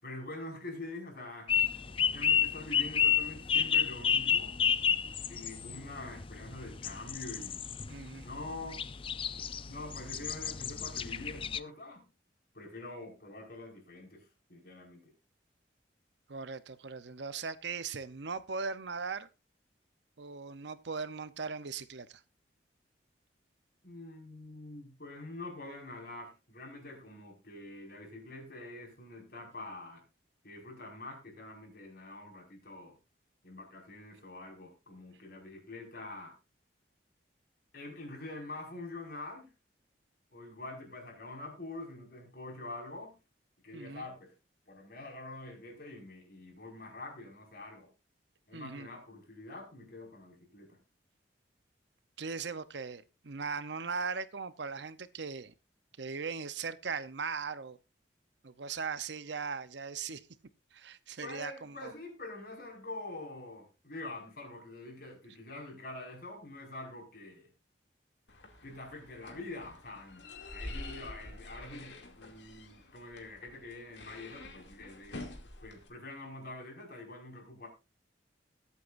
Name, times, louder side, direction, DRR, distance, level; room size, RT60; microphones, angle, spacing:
voice 1, 0.0-1.5 2.1-4.6 5.3-7.7 8.2-8.8 9.7-12.1 12.5-15.1 23.8-30.0 30.4-33.0 33.4-36.3 37.7-39.5 40.3-43.1 43.6-44.3 44.7-47.9 48.5-50.8 61.2-67.5 68.6-75.2 75.6-77.7, left 2 dB, 55° left, 5.3 m, -45 dB
sound 1, 1.5-11.6, left 7 dB, 30° left, 0.5 m, -31 dB
voice 2, 7.9-8.3 16.3-19.3 20.2-22.2 43.7-44.1 48.5-48.9 52.2-55.5 56.0-57.8 58.4-60.2 60.7-61.9, right 5 dB, 70° right, 0.8 m, -39 dB
sound 2, 68.3-75.9, left 2 dB, 75° left, 2.5 m, -47 dB
21.5 x 8.4 x 2.6 m
head